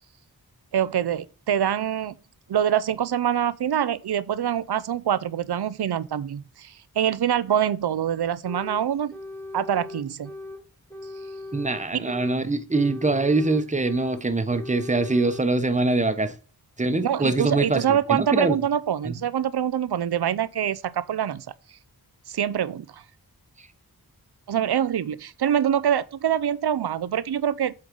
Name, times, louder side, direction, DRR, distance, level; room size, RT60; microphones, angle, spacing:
voice 1, 0.7-2.2 2.5-9.1 9.5-10.3 12.0-12.1 17.0-21.5 22.3-23.0 24.5-27.7, right 9 dB, 85° right, 0.6 m, -25 dB
sound 1, 8.4-8.8 9.1-10.6 10.9-12.4 12.7-14.2 14.5-15.4, left 2 dB, 5° left, 1.2 m, -39 dB
voice 2, 11.5-16.3 16.8-18.6 19.0-19.2, right 2 dB, 20° right, 0.9 m, -23 dB
7.9 x 3.9 x 5.3 m
wide cardioid pair, 80°, 38 cm